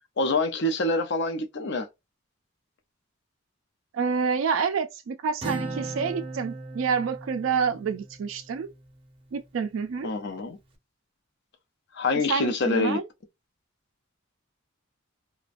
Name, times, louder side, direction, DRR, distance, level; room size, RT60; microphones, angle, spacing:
voice 1, 0.2-1.9 10.0-10.6 11.9-13.0, left 2 dB, 55° left, 0.5 m, -26 dB
voice 2, 3.9-8.7 9.3-10.1 12.3-13.0, right 6 dB, 65° right, 0.3 m, -28 dB
Acoustic guitar, 5.4-9.1, right 2 dB, 25° right, 0.6 m, -37 dB
2.4 x 2.1 x 2.4 m
head